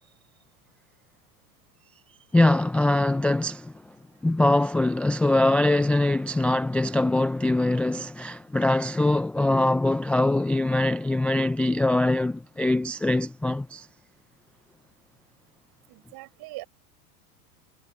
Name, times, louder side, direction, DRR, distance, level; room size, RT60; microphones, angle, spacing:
voice 1, 2.3-3.7 4.2-13.9, left 2 dB, 5° left, 0.3 m, -23 dB
voice 2, 15.9-16.6, right 20 dB, 55° right, 5.8 m, -41 dB
hypercardioid pair, 95°, 44 cm